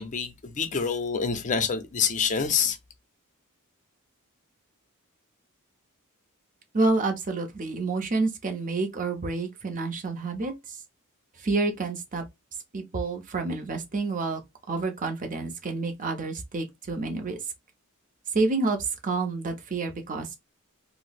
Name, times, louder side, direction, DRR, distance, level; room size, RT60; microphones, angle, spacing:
voice 1, 0.0-2.8, left 6 dB, 35° left, 0.5 m, -27 dB
voice 2, 6.7-10.8 11.4-12.2 12.7-14.4 14.7-17.4 18.3-20.4, right 3 dB, 40° right, 0.6 m, -28 dB
2.7 x 2.0 x 4.0 m
head